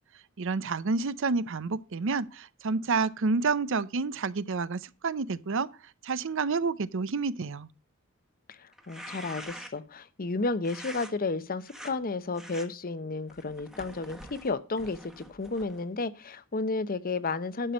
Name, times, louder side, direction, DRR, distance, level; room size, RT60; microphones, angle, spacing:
voice 1, 0.4-5.7 6.0-7.7, right 4 dB, 65° right, 0.6 m, -29 dB
voice 2, 8.5-17.7, left 3 dB, 45° left, 0.8 m, -32 dB
sound 1, 8.7-9.9 10.6-11.1 11.6-11.9 12.3-12.7 13.3-15.9, equal, ahead, 1.2 m, -45 dB
11.5 x 6.0 x 5.1 m
head